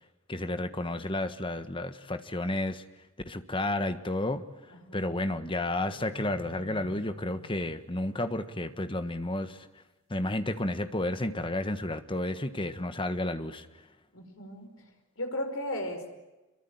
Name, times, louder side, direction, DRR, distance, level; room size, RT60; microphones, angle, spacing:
voice 1, 0.3-2.8 3.2-4.4 4.9-9.7 10.1-13.8, left 1 dB, 25° left, 10 dB, 1.4 m, -31 dB
sound 1, 5.8-9.2, left 3 dB, 85° right, 6.0 m, -51 dB
voice 2, 14.1-14.8 15.2-16.1, left 1 dB, 65° left, 5 dB, 5.3 m, -36 dB
26.5 x 23.0 x 9.4 m, 1.1 s
head